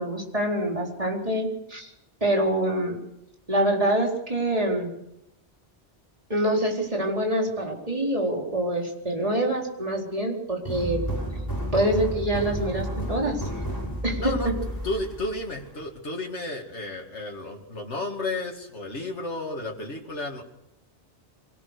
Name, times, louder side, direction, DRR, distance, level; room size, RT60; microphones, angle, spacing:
voice 1, 0.0-1.9 2.2-3.0 3.5-4.9 6.3-11.1 11.7-13.6 14.0-14.3, right 1 dB, 30° right, -1 dB, 4.4 m, -25 dB
sound 1, 10.6-15.8, right 1 dB, 15° left, 6.5 m, -31 dB
voice 2, 14.2-14.5 14.8-20.4, left 2 dB, 90° left, 0 dB, 2.5 m, -32 dB
24.0 x 17.5 x 6.7 m, 0.82 s
omnidirectional pair, 1.1 m